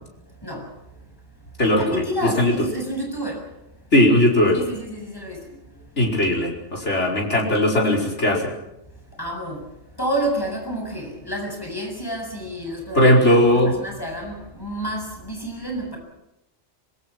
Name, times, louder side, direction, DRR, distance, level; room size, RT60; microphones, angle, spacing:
voice 1, 0.4-0.7 1.6-3.5 4.5-5.8 9.1-9.7 10.0-16.0, right 1 dB, 20° left, 1 dB, 7.1 m, -30 dB
voice 2, 1.6-2.0 2.4-2.5 3.9-4.6 6.0-8.5 13.0-13.7, left 1 dB, 70° left, -2 dB, 5.2 m, -18 dB
25.5 x 23.5 x 6.1 m, 0.92 s
omnidirectional pair, 1.3 m